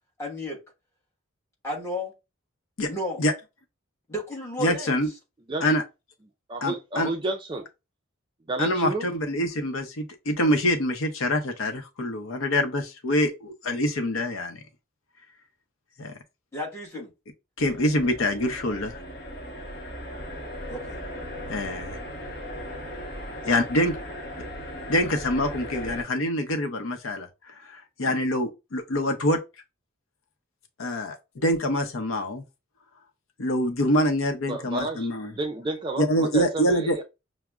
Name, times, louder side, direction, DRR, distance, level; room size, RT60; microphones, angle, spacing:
voice 1, 0.2-0.6 1.6-2.1 2.9-3.2 4.1-5.0 16.5-17.1 20.7-21.0 23.4-23.6 28.0-28.2, left 1 dB, 15° left, 1.2 m, -33 dB
voice 2, 4.6-5.1 5.6-5.8 6.6-7.1 8.6-14.6 16.0-16.1 17.6-19.0 21.5-22.0 23.5-24.0 24.9-27.3 27.7-29.4 30.8-32.4 33.4-35.3 36.0-37.0, left 1 dB, 75° left, 0.6 m, -25 dB
voice 3, 6.5-7.7 8.5-9.1 34.5-37.0, right 2 dB, 25° right, 0.3 m, -31 dB
sound 1, 17.6-26.0, equal, 45° left, 0.9 m, -37 dB
5.9 x 2.0 x 2.3 m
head